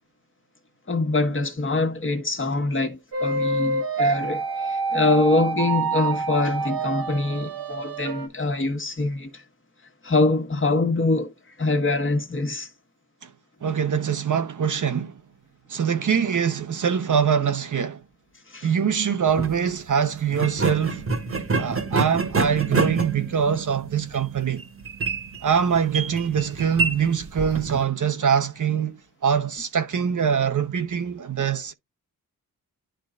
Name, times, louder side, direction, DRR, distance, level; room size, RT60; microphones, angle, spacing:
voice 1, 0.9-9.4 10.0-12.7 18.5-18.7, left 2 dB, 35° left, 1.4 m, -24 dB
sound 1, 3.1-8.3, right 3 dB, 75° right, 1.9 m, -27 dB
voice 2, 13.6-15.2 15.7-18.0 18.6-21.0 21.6-24.6 25.4-31.7, right 7 dB, 55° right, 0.9 m, -23 dB
sound 2, 19.3-19.5 20.3-27.8, right 3 dB, 35° right, 1.3 m, -27 dB
11.0 x 3.9 x 2.4 m
cardioid pair, 65°, 36 cm